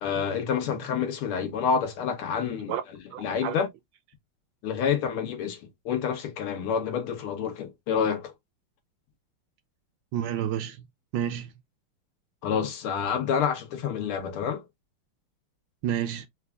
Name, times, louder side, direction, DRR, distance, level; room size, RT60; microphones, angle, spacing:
voice 1, 0.0-2.7 3.2-3.7 4.6-8.3 12.4-14.6, left 7 dB, 85° left, 2.1 m, -28 dB
voice 2, 3.1-3.5 10.1-10.8 11.1-11.5 15.8-16.3, right 10 dB, 75° right, 1.1 m, -30 dB
4.8 x 2.3 x 3.3 m
omnidirectional pair, 2.3 m